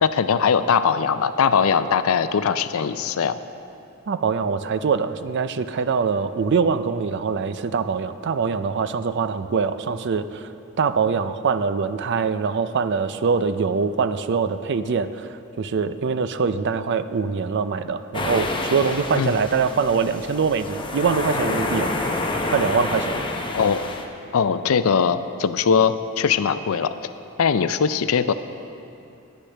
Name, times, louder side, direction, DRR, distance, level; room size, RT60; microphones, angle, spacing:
voice 1, 0.0-3.4 19.1-19.3 23.5-23.8 24.3-26.9 27.4-28.3, left 6 dB, 85° left, 12 dB, 0.4 m, -20 dB
voice 2, 4.1-10.5 10.8-21.9 22.5-23.3, right 5 dB, 55° right, 12 dB, 0.4 m, -23 dB
sound 1, 18.1-24.1, left 2 dB, 25° left, 0.8 m, -28 dB
16.0 x 10.0 x 3.4 m, 2.7 s
head